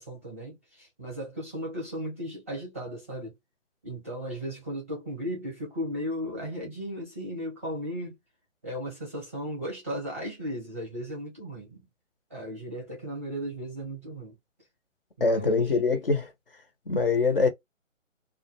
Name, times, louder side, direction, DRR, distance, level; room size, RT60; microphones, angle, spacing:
voice 1, 0.0-3.3 3.8-8.2 8.6-11.9 12.3-14.4 15.2-15.7, equal, 10° right, 0.6 m, -36 dB
voice 2, 15.2-16.3 16.9-17.5, left 4 dB, 45° left, 0.7 m, -23 dB
2.4 x 2.2 x 2.7 m
figure-of-eight pair, 150°, 39 cm